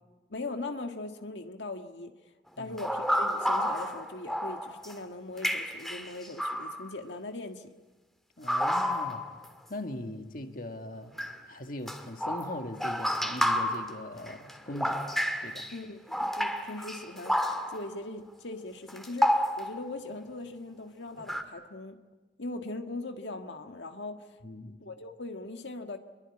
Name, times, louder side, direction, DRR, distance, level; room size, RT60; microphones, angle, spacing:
voice 1, 0.3-2.1 2.6-7.7 15.7-22.0 22.4-24.4 24.8-26.0, left 2 dB, 90° left, 5 dB, 1.7 m, -40 dB
sound 1, 2.8-4.9 5.4-6.9 8.5-9.5 11.2-11.4 11.9-15.8 16.1-17.9 18.9-19.9 21.2-21.4, equal, ahead, 1.9 m, -30 dB
voice 2, 8.4-9.2 9.7-11.1 11.5-15.0 15.4-15.7 24.4-24.8, left 1 dB, 50° left, 6 dB, 1.9 m, -40 dB
26.0 x 22.5 x 9.8 m, 1.2 s
head